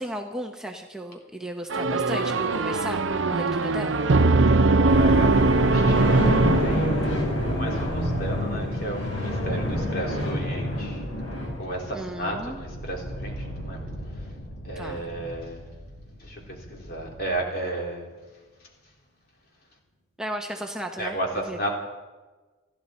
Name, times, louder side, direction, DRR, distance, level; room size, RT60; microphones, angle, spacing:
voice 1, 0.0-4.0 11.9-12.6 14.8-15.0 20.2-21.2 21.5-21.6, right 1 dB, 5° right, 2 dB, 0.9 m, -35 dB
sound 1, 1.7-7.3, right 3 dB, 75° right, 0.8 m, -21 dB
voice 2, 4.5-11.1 11.6-14.3 14.6-15.7 16.2-18.1 18.6-18.7 21.0-21.7, right 1 dB, 50° left, 0 dB, 3.4 m, -34 dB
sound 2, 4.8-17.3, equal, 90° left, 4.6 m, -29 dB
29.0 x 11.0 x 4.3 m, 1.3 s
head